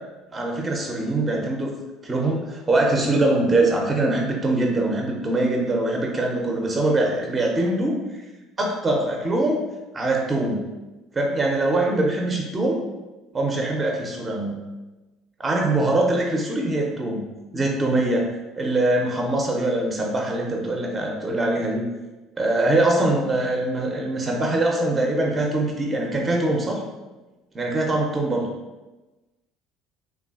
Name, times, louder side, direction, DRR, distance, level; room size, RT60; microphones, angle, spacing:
voice 1, 0.3-1.7 2.0-7.9 8.6-9.6 9.9-10.6 11.1-12.8 13.3-14.6 15.4-17.2 17.5-18.3 18.6-21.8 22.4-26.8 27.5-28.5, right 2 dB, 25° right, 0 dB, 0.5 m, -23 dB
3.1 x 2.3 x 2.3 m, 1.1 s
hypercardioid pair, 65°, 0 cm